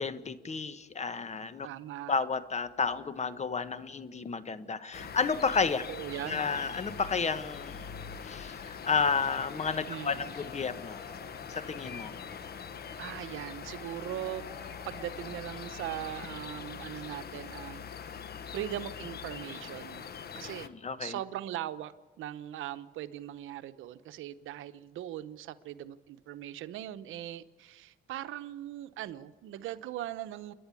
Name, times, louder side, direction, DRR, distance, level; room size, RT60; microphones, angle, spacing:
voice 1, 0.0-1.7 2.1-5.8 6.2-7.8 8.2-11.0 11.5-12.1 20.6-21.2, left 5 dB, 35° left, 12 dB, 1.3 m, -31 dB
voice 2, 1.6-2.2 5.0-5.1 5.9-6.5 9.9-10.3 13.0-14.4 14.8-18.2 18.5-20.1 20.3-20.7 21.0-30.5, right 12 dB, 85° right, 12 dB, 0.9 m, -40 dB
sound 1, 4.9-20.7, left 7 dB, 55° left, 1.3 m, -43 dB
Cheering / Applause / Crowd, 9.3-18.3, left 3 dB, 80° left, 5.6 m, -53 dB
29.0 x 11.0 x 8.4 m, 1.3 s
cardioid pair, 90°, 20 cm